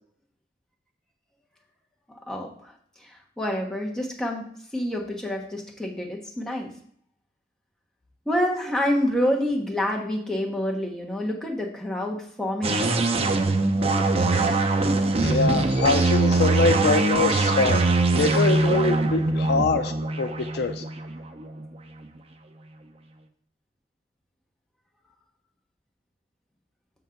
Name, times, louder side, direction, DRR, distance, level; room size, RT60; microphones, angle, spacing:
voice 1, 2.1-2.7 3.4-4.5 4.7-6.7 8.3-13.0, left 1 dB, 5° left, -1 dB, 1.1 m, -27 dB
sound 1, 12.6-22.1, right 3 dB, 35° right, 0.5 m, -23 dB
voice 2, 15.2-17.8 18.1-19.9 20.2-20.8, left 3 dB, 60° left, 9 dB, 0.4 m, -24 dB
6.1 x 3.8 x 5.8 m, 0.62 s
head